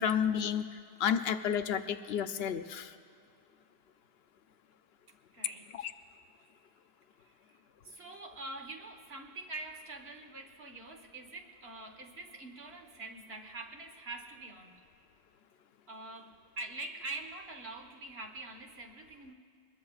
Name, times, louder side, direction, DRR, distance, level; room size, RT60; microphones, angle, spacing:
voice 1, 0.0-2.9 5.8-5.9, left 8 dB, 70° left, 10 dB, 0.8 m, -31 dB
voice 2, 5.3-5.9 7.2-7.3 7.8-14.8 15.9-19.3, right 2 dB, 65° right, 3 dB, 1.5 m, -45 dB
23.0 x 21.0 x 2.4 m, 2.5 s
omnidirectional pair, 1.1 m